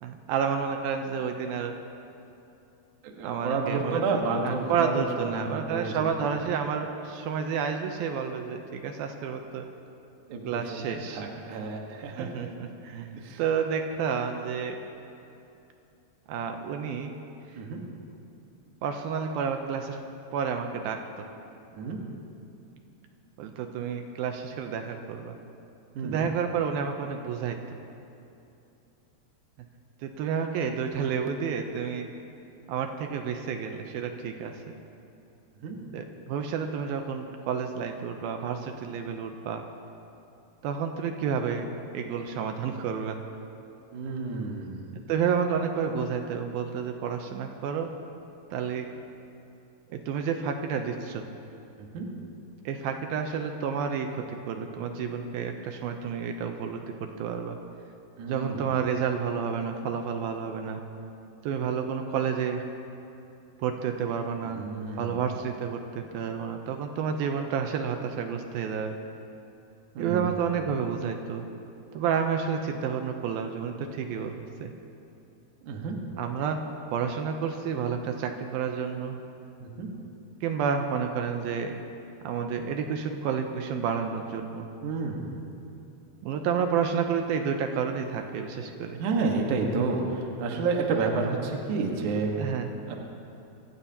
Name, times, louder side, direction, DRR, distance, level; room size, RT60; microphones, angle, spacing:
voice 1, 0.0-1.7 3.2-9.7 10.4-11.2 12.2-14.8 16.3-17.1 17.5-17.6 18.8-20.0 20.3-21.3 23.4-25.4 26.0-27.6 30.0-32.1 32.7-34.5 35.9-39.6 40.6-41.7 41.9-43.2 45.1-47.9 48.5-48.9 49.9-51.3 52.7-57.6 58.3-60.8 61.4-62.6 63.6-64.6 65.0-69.0 70.0-71.5 71.9-74.7 76.2-76.6 76.9-79.2 80.4-81.8 82.2-84.7 86.2-89.0 92.4-92.7, right 6 dB, 80° right, 5 dB, 2.3 m, -30 dB
voice 2, 3.0-5.9 10.3-10.8 11.1-12.3 13.2-13.4 17.5-17.8 21.7-22.0 26.0-26.2 35.6-35.8 43.9-44.8 51.8-52.1 58.2-58.7 64.4-65.2 70.0-70.4 75.6-76.0 79.6-79.9 84.8-85.2 89.0-92.3 92.9-93.0, right 4 dB, 60° right, 1 dB, 2.5 m, -30 dB
26.5 x 15.5 x 2.9 m, 2.8 s
omnidirectional pair, 4.7 m